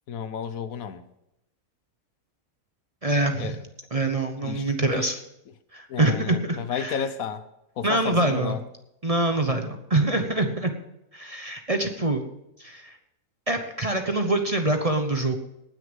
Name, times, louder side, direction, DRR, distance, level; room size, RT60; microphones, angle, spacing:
voice 1, 0.1-1.0 3.4-3.6 4.4-5.1 5.9-7.4 7.8-8.6, left 7 dB, 70° left, 1.2 m, -32 dB
voice 2, 3.0-3.6 3.9-5.2 5.7-7.0 7.8-8.6 9.0-10.7 11.1-12.2 12.6-13.0 13.5-15.4, right 2 dB, 30° right, 0.8 m, -25 dB
19.0 x 6.6 x 5.3 m
omnidirectional pair, 1.5 m